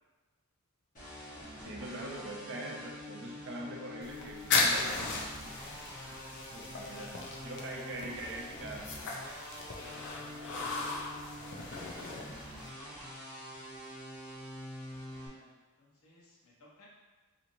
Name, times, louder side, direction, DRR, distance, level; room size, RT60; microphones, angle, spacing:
sound 1, 0.9-15.3, left 1 dB, 35° left, 1.1 m, -46 dB
voice 1, 1.6-5.2 6.5-8.8, right 1 dB, 55° right, -1 dB, 0.5 m, -43 dB
sound 2, 4.0-12.7, left 3 dB, 55° left, 0.4 m, -36 dB
voice 2, 6.0-7.1 9.7-10.9 15.3-16.9, left 1 dB, 70° left, -5 dB, 0.8 m, -59 dB
sound 3, 7.2-12.7, equal, 10° right, 0.5 m, -53 dB
3.0 x 2.7 x 2.6 m, 1.3 s
head